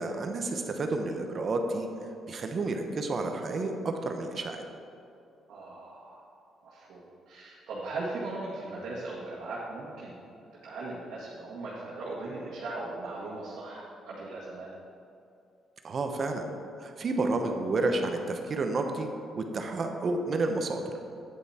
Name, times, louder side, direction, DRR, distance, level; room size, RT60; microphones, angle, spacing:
voice 1, 0.0-1.9 2.3-4.6 15.8-16.5 16.8-19.1 19.4-20.8, right 3 dB, 45° right, 5 dB, 0.9 m, -30 dB
voice 2, 5.5-6.2 6.6-10.2 10.6-14.7, right 2 dB, 75° right, -7 dB, 1.8 m, -38 dB
9.4 x 8.1 x 4.3 m, 2.6 s
cardioid pair, 90°, 0 cm